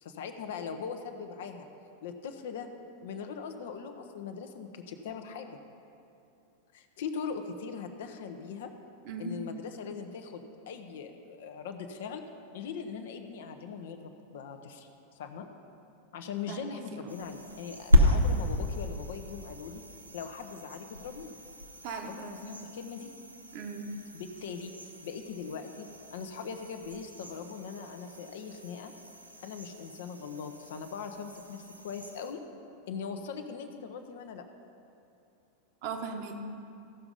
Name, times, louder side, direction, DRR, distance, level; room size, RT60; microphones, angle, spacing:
voice 1, 0.0-1.7 2.0-2.7 3.0-5.6 6.7-8.7 9.2-12.2 12.5-14.9 15.2-15.5 16.1-19.8 20.1-21.3 22.0-23.1 24.1-24.7 25.0-28.9 29.4-32.4 32.9-34.5, left 6 dB, 55° left, 7 dB, 0.8 m, -40 dB
voice 2, 9.0-9.3 16.5-17.2 21.8-22.4 23.5-23.9 35.8-36.4, right 4 dB, 45° right, 3 dB, 1.2 m, -38 dB
sound 1, 17.1-32.3, left 1 dB, 85° right, 0.7 m, -33 dB
15.0 x 5.9 x 5.4 m, 2.7 s
figure-of-eight pair, 90°, 0 cm